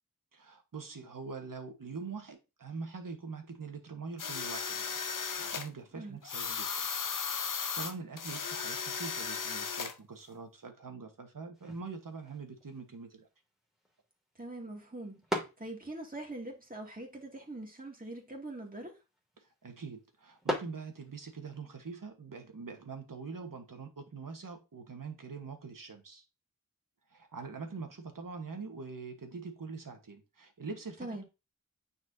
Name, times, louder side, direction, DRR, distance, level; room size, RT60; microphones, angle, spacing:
voice 1, 0.3-4.9 5.2-6.9 7.5-13.3 19.4-26.2 27.1-31.2, right 4 dB, 85° right, 1.4 m, -44 dB
sound 1, 4.2-5.7 6.2-9.9, left 6 dB, 75° left, 0.7 m, -36 dB
sound 2, 11.5-21.6, equal, ahead, 2.2 m, -44 dB
voice 2, 14.4-18.9 31.0-31.2, right 2 dB, 25° right, 2.2 m, -43 dB
9.3 x 4.2 x 2.7 m
wide cardioid pair, 70°, 32 cm